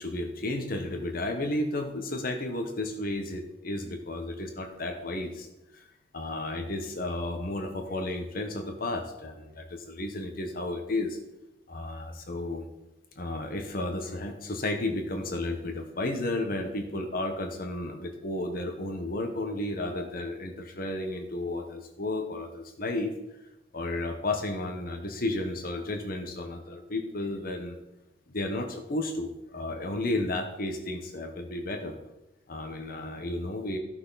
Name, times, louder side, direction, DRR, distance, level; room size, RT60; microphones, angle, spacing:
voice 1, 0.0-5.5 5.7-5.8 6.1-11.2 11.7-12.7 13.2-23.1 23.7-27.8 28.3-31.9 32.5-33.8, left 2 dB, 50° left, 5 dB, 1.1 m, -33 dB
14.0 x 5.9 x 4.1 m, 0.95 s
head